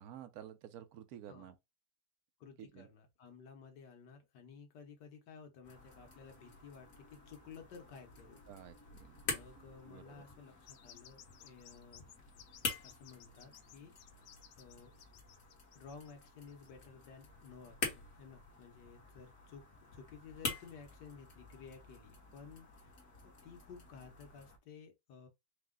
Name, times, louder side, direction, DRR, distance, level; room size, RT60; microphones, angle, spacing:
voice 1, 0.0-1.5 2.6-2.9 8.5-9.2 9.6-10.2, right 10 dB, 70° right, 1.1 m, -52 dB
voice 2, 2.4-8.4 9.2-12.1 12.8-14.9 15.7-19.6 19.9-22.9 23.2-25.3, left 5 dB, 90° left, 1.7 m, -55 dB
sound 1, 5.6-24.6, left 4 dB, 55° left, 1.7 m, -47 dB
sound 2, 10.7-16.7, left 10 dB, 70° left, 0.8 m, -59 dB
4.8 x 2.2 x 3.6 m
omnidirectional pair, 1.8 m